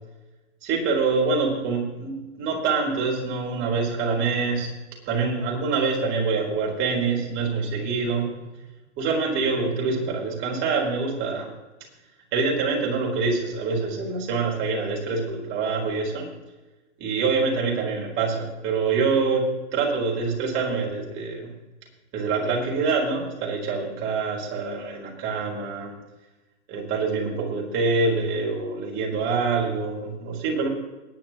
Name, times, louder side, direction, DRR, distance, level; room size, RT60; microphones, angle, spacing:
voice 1, 0.6-4.7 5.1-8.3 9.0-11.5 12.3-16.3 17.0-21.5 22.1-26.0 26.7-30.7, right 4 dB, 35° right, -1 dB, 4.4 m, -25 dB
21.5 x 10.5 x 3.0 m, 1.1 s
hypercardioid pair, 120°, 36 cm